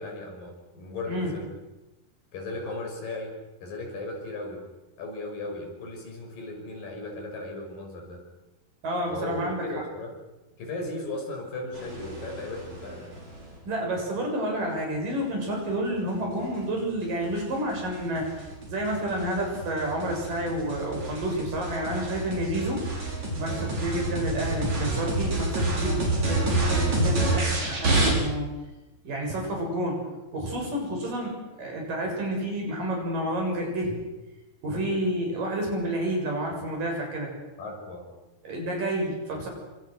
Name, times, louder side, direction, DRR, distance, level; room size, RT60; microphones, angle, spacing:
voice 1, 0.0-1.5 2.3-3.3 3.6-4.6 5.0-8.2 9.1-10.2 10.6-13.1 37.6-38.1, left 2 dB, 75° left, 1 dB, 7.6 m, -36 dB
voice 2, 8.8-9.6 13.7-18.3 18.7-22.8 23.4-28.5 29.0-30.1 30.3-31.3 31.6-34.0 34.6-37.3 38.4-39.5, right 1 dB, 70° right, 1 dB, 8.7 m, -29 dB
sound 1, 11.7-13.5 16.4-28.1, right 2 dB, 50° right, 7.2 m, -29 dB
28.5 x 25.0 x 6.5 m, 1.0 s
omnidirectional pair, 4.0 m